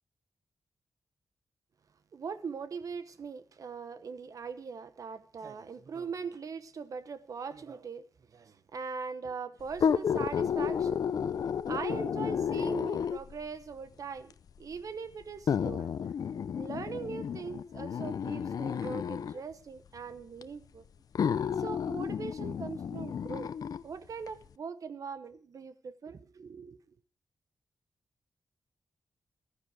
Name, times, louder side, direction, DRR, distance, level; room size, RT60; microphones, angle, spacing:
voice 1, 2.1-11.1 11.7-14.3 14.6-15.9 16.6-20.8 21.6-23.5 23.8-26.8, right 5 dB, 60° right, 1.0 m, -41 dB
sound 1, 9.7-13.4 14.3-14.4 15.5-19.4 20.4-20.5 21.1-23.8 24.3-24.4, left 7 dB, 70° left, 0.6 m, -32 dB
14.5 x 13.0 x 4.8 m
wide cardioid pair, 115°, 7 cm